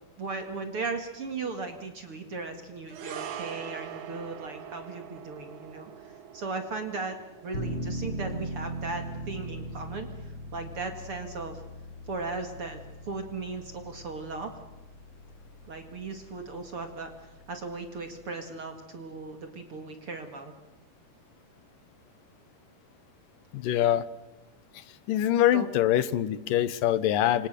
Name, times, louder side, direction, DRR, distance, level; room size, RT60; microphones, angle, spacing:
voice 1, 0.2-7.2 7.4-11.6 12.1-12.8 13.1-14.5 15.7-20.5 25.5-25.7, right 3 dB, 45° right, 6 dB, 2.7 m, -37 dB
sound 1, 2.9-11.4 11.6-11.8, right 9 dB, 65° right, 2.7 m, -44 dB
sound 2, 7.5-18.3, right 1 dB, 40° left, 4.5 m, -40 dB
voice 2, 23.5-24.1 25.1-27.5, left 12 dB, 85° left, 16 dB, 2.7 m, -24 dB
28.0 x 26.0 x 6.8 m, 1.1 s
omnidirectional pair, 3.8 m